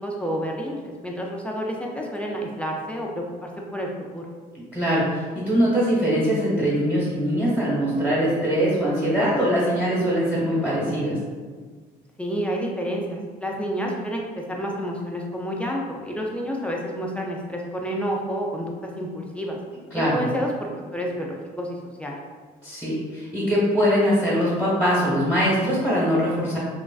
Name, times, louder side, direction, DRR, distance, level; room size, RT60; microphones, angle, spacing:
voice 1, 0.0-4.3 12.2-14.2 14.5-19.6 19.9-22.2, equal, 5° left, -2 dB, 0.3 m, -29 dB
voice 2, 4.7-11.2 19.9-20.2 22.6-26.6, equal, 10° right, -9 dB, 1.1 m, -22 dB
3.1 x 2.3 x 2.3 m, 1.5 s
cardioid pair, 110°, 17 cm